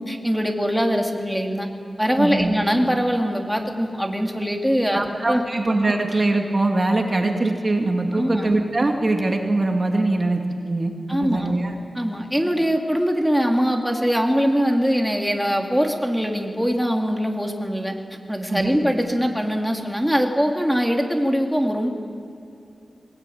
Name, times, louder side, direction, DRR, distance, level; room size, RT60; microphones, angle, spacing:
voice 1, 0.0-1.7 2.0-5.4 8.1-8.5 11.1-11.5 11.9-17.9 18.3-21.9, equal, ahead, 2 dB, 2.7 m, -22 dB
voice 2, 2.2-2.5 4.9-11.7 18.5-18.8, right 2 dB, 35° right, 3 dB, 2.3 m, -22 dB
21.0 x 20.0 x 9.4 m, 2.7 s
wide cardioid pair, 80°, 0 cm